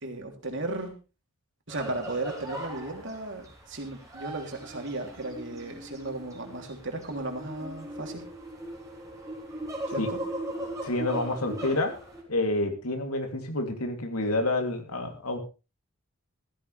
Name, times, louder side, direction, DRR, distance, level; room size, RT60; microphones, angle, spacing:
voice 1, 0.0-0.9 1.7-8.2 9.9-10.2, right 2 dB, 55° right, 3 dB, 3.2 m, -35 dB
sound 1, 1.7-12.2, right 1 dB, 15° right, 3.9 m, -39 dB
voice 2, 10.8-11.9 12.3-15.4, left 2 dB, 80° left, 4 dB, 3.1 m, -28 dB
15.0 x 15.0 x 3.4 m, 0.32 s
head